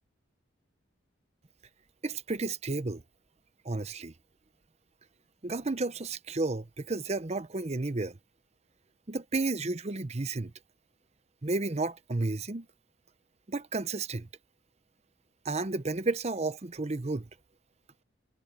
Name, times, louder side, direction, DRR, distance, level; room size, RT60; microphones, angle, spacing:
voice 1, 2.0-3.0 3.6-4.1 5.4-8.2 9.1-10.5 11.4-12.7 13.5-14.3 15.4-17.3, right 3 dB, 35° right, 0.8 m, -32 dB
head